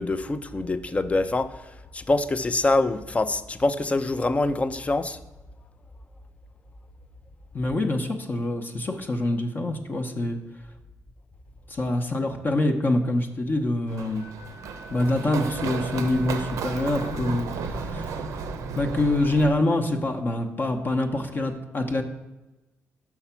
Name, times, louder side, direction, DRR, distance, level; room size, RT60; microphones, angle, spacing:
voice 1, 0.0-5.2, left 2 dB, 25° left, 12 dB, 0.5 m, -25 dB
voice 2, 7.5-10.4 11.7-14.3 14.9-18.3 18.8-22.0, left 1 dB, 40° left, 4 dB, 0.8 m, -25 dB
Run, 13.9-19.5, right 5 dB, 85° right, 0.6 m, -33 dB
Wind instrument woodwind instrument, 14.2-17.7, left 2 dB, 75° left, 1.2 m, -48 dB
6.0 x 5.6 x 5.7 m, 1.0 s
cardioid pair, 90°, 5 cm